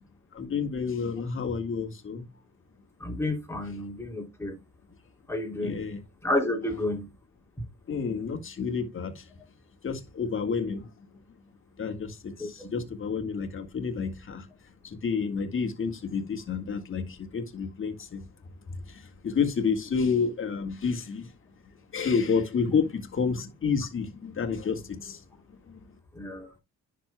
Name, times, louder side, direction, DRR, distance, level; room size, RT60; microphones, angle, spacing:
voice 1, 0.3-2.2 5.6-6.0 7.9-9.2 9.8-10.9 11.8-14.5 14.8-18.3 18.9-21.3 21.9-25.2 25.7-25.8, left 5 dB, 45° left, 1.7 m, -30 dB
voice 2, 3.0-4.6 5.3-5.9 6.2-7.1 12.4-12.8 26.1-26.6, left 1 dB, 10° left, 2.9 m, -31 dB
10.0 x 6.1 x 2.2 m
cardioid pair, 90°, 30 cm